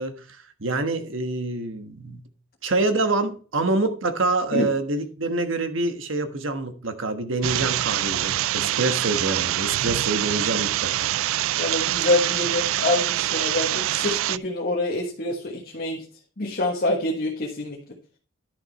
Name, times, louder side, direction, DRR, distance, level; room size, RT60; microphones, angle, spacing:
voice 1, 0.0-2.2 2.6-11.1, right 2 dB, 70° right, 1.4 m, -26 dB
sound 1, 7.4-14.4, right 14 dB, 85° right, 0.3 m, -25 dB
voice 2, 11.6-16.0 16.4-17.8, left 2 dB, 50° left, 1.4 m, -26 dB
11.0 x 6.6 x 4.1 m
head